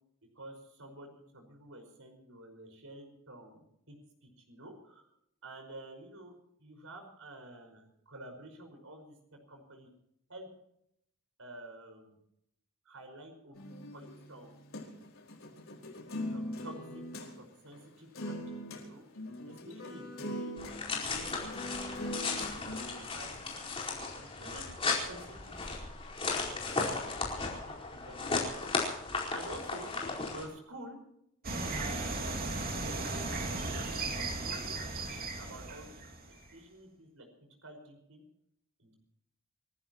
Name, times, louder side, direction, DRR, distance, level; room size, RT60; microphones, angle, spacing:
voice 1, 0.4-4.0 4.2-5.1 5.4-6.3 6.6-9.2 9.5-9.9 10.3-10.5 11.4-12.2 12.9-14.5 16.3-19.0 19.4-20.6 21.0-24.7 25.0-25.6 26.2-26.5 26.8-28.6 29.3-29.9 30.3-31.0 31.7-32.5 32.7-34.1 34.4-36.2 36.5-37.3 37.6-38.2 38.8-39.0, right 1 dB, 75° right, 5 dB, 5.3 m, -50 dB
sound 1, 13.5-17.3 17.7-17.8 18.1-18.8 19.1-23.0, left 1 dB, 70° left, 4.9 m, -41 dB
sound 2, 20.6-30.4, left 4 dB, 25° left, 4.6 m, -35 dB
sound 3, 31.4-36.5, right 2 dB, 45° right, 2.9 m, -36 dB
28.5 x 15.5 x 3.0 m, 0.75 s
head